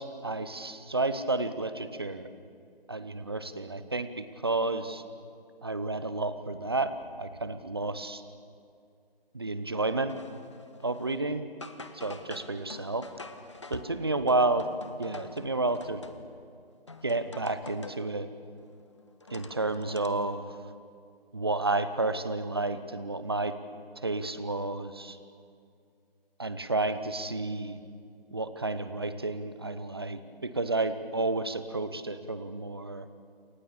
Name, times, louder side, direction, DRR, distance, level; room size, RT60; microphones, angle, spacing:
voice 1, 0.0-2.3 2.9-5.0 5.6-8.2 9.3-10.1 10.8-11.5 11.9-13.1 13.7-16.0 17.0-18.3 19.3-20.4 21.3-23.6 24.0-25.2 26.4-27.8 28.3-33.1, right 2 dB, 25° right, 12 dB, 0.9 m, -31 dB
sound 1, 10.1-11.3 11.6-16.5 16.9-18.1 18.6-20.1, left 3 dB, 30° left, 1.0 m, -46 dB
28.5 x 25.0 x 6.9 m, 2.3 s
figure-of-eight pair, 160°, 30 cm